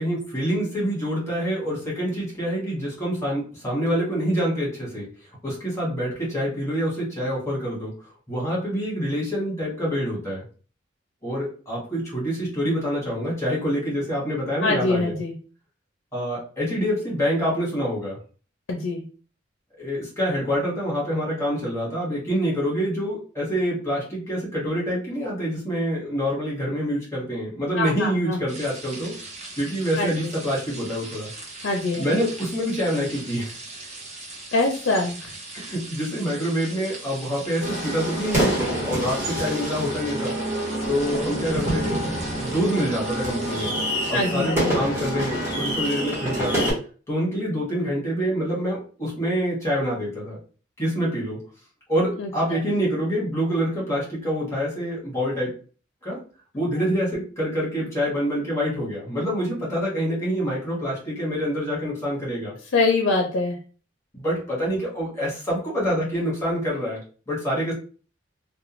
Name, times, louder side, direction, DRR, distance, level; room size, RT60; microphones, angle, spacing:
voice 1, 0.0-5.1 5.4-7.9 8.3-10.4 11.2-15.2 16.1-18.2 19.8-29.1 29.6-31.3 32.0-33.5 35.5-38.5 38.8-40.3 40.9-43.7 44.1-46.7 47.1-50.4 50.8-51.4 51.9-55.5 56.0-56.2 56.5-62.6 64.1-67.7, equal, 15° left, -5 dB, 1.3 m, -26 dB
voice 2, 14.6-15.3 18.7-19.0 27.8-28.4 30.0-30.3 31.6-32.0 34.5-35.3 44.1-44.7 52.2-52.3 62.7-63.6, left 3 dB, 75° left, 2 dB, 0.5 m, -24 dB
sound 1, 28.5-43.7, right 3 dB, 35° right, 0.7 m, -39 dB
sound 2, 37.6-46.7, right 1 dB, 15° right, 1.2 m, -27 dB
2.4 x 2.2 x 3.0 m, 0.38 s
head